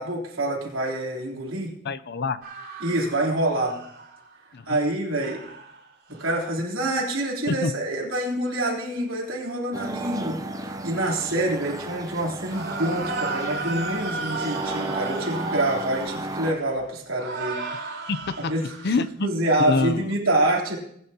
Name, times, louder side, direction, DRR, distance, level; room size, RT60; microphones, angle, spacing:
voice 1, 0.0-1.7 2.8-3.8 4.7-5.4 6.2-17.6 18.5-18.6 19.2-20.8, right 1 dB, 80° right, -2 dB, 3.4 m, -26 dB
voice 2, 1.8-2.4 4.5-4.8 7.5-7.7 18.1-18.5 18.8-19.3 19.6-20.1, left 3 dB, 55° left, 14 dB, 0.6 m, -26 dB
sound 1, 2.4-4.3 5.2-5.8 6.2-6.3 12.5-16.8 17.2-19.1, right 3 dB, 60° right, 5.1 m, -34 dB
sound 2, 9.7-16.5, right 2 dB, 15° right, 0.7 m, -34 dB
20.5 x 9.5 x 2.9 m, 0.69 s
head